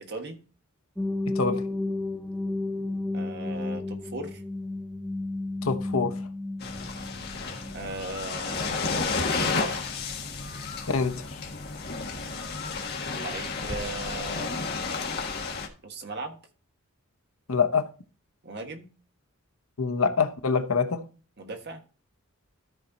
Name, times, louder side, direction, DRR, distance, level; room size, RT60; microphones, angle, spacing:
voice 1, 0.1-0.4 3.1-4.4 7.7-8.9 9.4-9.8 13.1-14.6 15.8-16.4 18.4-18.9 21.4-21.8, right 2 dB, 50° right, 1.4 m, -38 dB
sound 1, 1.0-8.8, left 2 dB, 5° left, 0.8 m, -33 dB
voice 2, 1.2-1.6 5.6-6.1 10.9-11.4 17.5-17.9 19.8-21.0, left 5 dB, 75° left, 0.9 m, -25 dB
sound 2, 6.6-15.7, left 4 dB, 50° left, 1.4 m, -32 dB
13.0 x 4.4 x 4.0 m
head